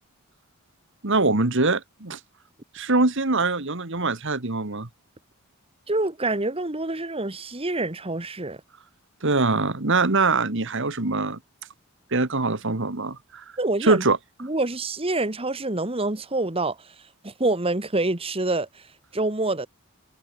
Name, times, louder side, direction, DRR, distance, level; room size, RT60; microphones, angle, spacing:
voice 1, 1.0-2.2 2.7-4.9 9.2-11.4 12.1-13.4 13.8-14.2, right 3 dB, 55° right, 1.8 m, -23 dB
voice 2, 5.9-8.6 13.6-14.0 14.4-16.9 17.2-18.9 19.1-19.7, right 2 dB, 25° right, 1.6 m, -26 dB
head